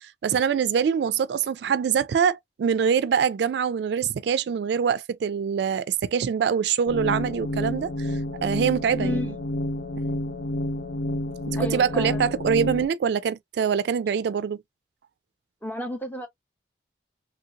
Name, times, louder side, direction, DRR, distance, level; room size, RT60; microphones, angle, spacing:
voice 1, 0.0-9.2 11.5-14.6, right 7 dB, 70° right, 0.3 m, -24 dB
sound 1, 6.9-12.9, left 1 dB, 85° left, 0.7 m, -29 dB
voice 2, 9.0-9.3 11.6-12.2 15.6-16.3, left 1 dB, 10° left, 0.7 m, -32 dB
3.1 x 2.5 x 2.8 m
head